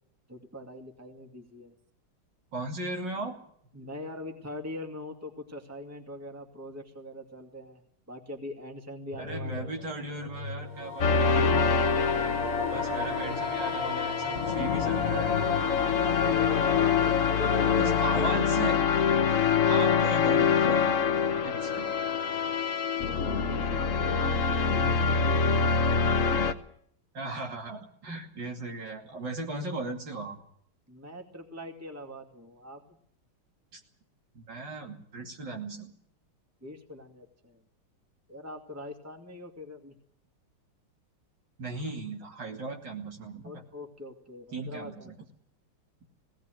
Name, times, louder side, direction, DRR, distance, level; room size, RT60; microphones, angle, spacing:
voice 1, 0.3-1.7 3.7-7.8 8.1-9.8 16.1-17.9 23.0-25.8 30.9-33.0 36.6-37.6 38.3-39.9 43.4-45.1, left 1 dB, 5° right, 4 dB, 2.1 m, -42 dB
voice 2, 2.5-3.4 9.2-11.6 12.7-15.4 17.7-18.8 19.6-21.0 21.3-21.9 27.1-30.4 33.7-33.8 34.3-35.9 41.6-43.6 44.5-45.1, right 2 dB, 55° right, 2 dB, 3.2 m, -37 dB
sound 1, 9.1-16.6, left 2 dB, 80° left, 2.6 m, -42 dB
sound 2, 10.7-18.8, left 3 dB, 80° right, 5.4 m, -33 dB
sound 3, 11.0-26.5, left 6 dB, 45° left, 1.1 m, -25 dB
18.5 x 18.0 x 9.2 m, 0.66 s
omnidirectional pair, 2.4 m